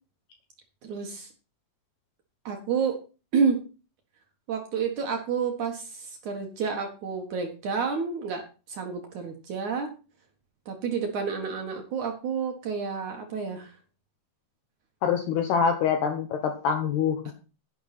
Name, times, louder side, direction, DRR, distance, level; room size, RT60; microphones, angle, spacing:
voice 1, 0.8-1.3 2.5-3.0 3.3-3.7 4.5-8.4 8.7-9.9 10.7-13.7 17.3-17.4, right 5 dB, 60° right, 3 dB, 2.2 m, -29 dB
voice 2, 15.0-17.3, left 7 dB, 70° left, 5 dB, 3.0 m, -25 dB
11.0 x 10.5 x 4.3 m, 0.34 s
omnidirectional pair, 5.3 m